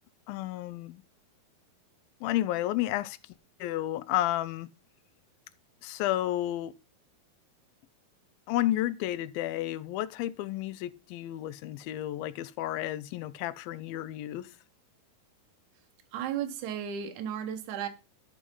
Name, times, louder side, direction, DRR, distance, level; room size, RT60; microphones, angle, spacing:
voice 1, 0.3-1.0 2.2-3.2 3.6-4.7 5.8-6.8 8.5-14.5, left 14 dB, 90° left, 2.5 m, -31 dB
voice 2, 16.1-17.9, right 9 dB, 65° right, 2.5 m, -34 dB
12.5 x 4.9 x 5.3 m
omnidirectional pair, 4.1 m